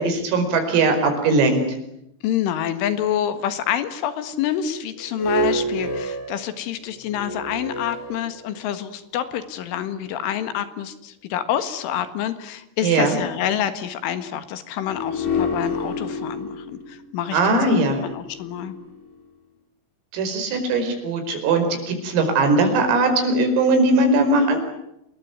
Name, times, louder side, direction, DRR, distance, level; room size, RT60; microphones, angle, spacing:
voice 1, 0.0-1.6 12.8-13.2 17.3-18.0 20.1-24.6, right 2 dB, 80° right, 6 dB, 7.6 m, -19 dB
voice 2, 2.2-17.4 18.0-18.8, left 10 dB, 70° left, 11 dB, 4.0 m, -27 dB
sound 1, 5.0-8.8 9.5-9.6 14.8-19.1, left 1 dB, 55° left, 8.9 m, -29 dB
28.0 x 21.0 x 9.6 m, 0.82 s
omnidirectional pair, 5.9 m